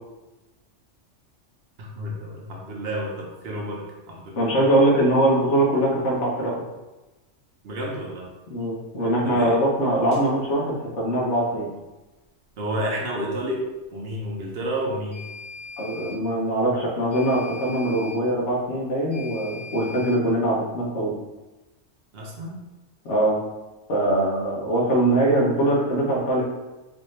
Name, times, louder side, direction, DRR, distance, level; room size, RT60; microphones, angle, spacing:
voice 1, 1.8-4.5 7.6-8.3 9.2-9.6 12.6-13.6 13.9-15.3 22.1-22.6, right 1 dB, 55° right, -1 dB, 0.9 m, -30 dB
voice 2, 4.4-6.6 8.5-11.7 15.8-21.1 23.0-23.4 23.9-26.4, right 1 dB, 65° left, -4 dB, 1.3 m, -22 dB
sound 1, 10.1-10.3 15.1-16.2 17.1-18.2 19.1-20.2, left 4 dB, 85° left, 1.4 m, -40 dB
4.0 x 2.6 x 3.1 m, 1.1 s
omnidirectional pair, 1.3 m